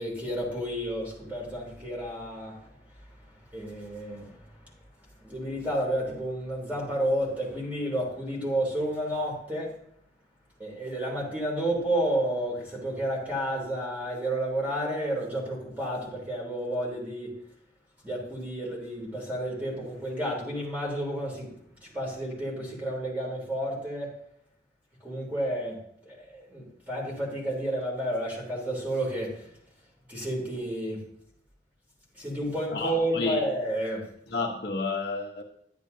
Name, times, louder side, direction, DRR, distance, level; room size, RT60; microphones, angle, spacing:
voice 1, 0.0-2.5 3.5-4.3 5.2-9.7 10.6-17.3 18.0-21.5 21.9-24.1 25.0-25.8 26.1-29.3 30.1-31.0 32.2-34.0, right 1 dB, 10° right, 3.0 m, -31 dB
voice 2, 32.7-33.4 34.3-35.4, left 3 dB, 60° left, 1.1 m, -30 dB
10.5 x 9.6 x 2.8 m
head